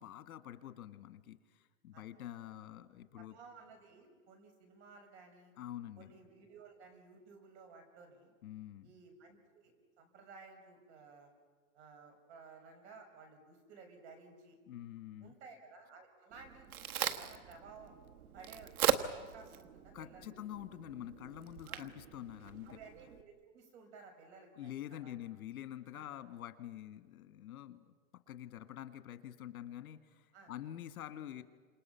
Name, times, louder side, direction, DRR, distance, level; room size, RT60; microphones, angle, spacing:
voice 1, 0.0-3.4 5.6-6.1 8.4-8.9 14.7-15.3 19.9-22.8 24.6-27.9 28.3-31.4, left 12 dB, 75° left, 9 dB, 1.7 m, -47 dB
voice 2, 3.1-5.5 6.0-8.3 8.8-11.3 11.7-14.6 15.2-17.9 18.3-20.3 21.7-21.9 22.6-25.2 25.9-26.1 30.3-30.5, right 4 dB, 50° right, 5 dB, 6.2 m, -56 dB
Crack, 16.3-23.2, right 10 dB, 85° right, 1.7 m, -39 dB
29.5 x 27.5 x 5.7 m, 1.5 s
supercardioid pair, 165°, 43 cm